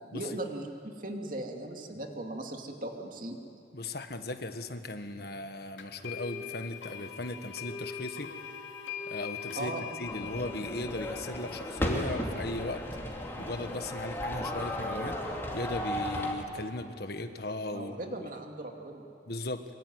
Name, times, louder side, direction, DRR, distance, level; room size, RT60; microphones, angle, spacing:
voice 1, 0.1-3.4 9.6-9.8 17.7-19.0, right 1 dB, 45° right, 2 dB, 2.6 m, -38 dB
voice 2, 3.7-8.3 9.1-9.7 10.0-12.8 13.4-15.2 15.5-18.1 19.3-19.6, left 2 dB, 55° left, 8 dB, 1.5 m, -37 dB
sound 1, 5.8-14.6, left 7 dB, 80° left, 3.0 m, -43 dB
sound 2, 10.1-16.3, equal, 15° left, 3.0 m, -35 dB
25.0 x 24.0 x 9.7 m, 2.6 s
head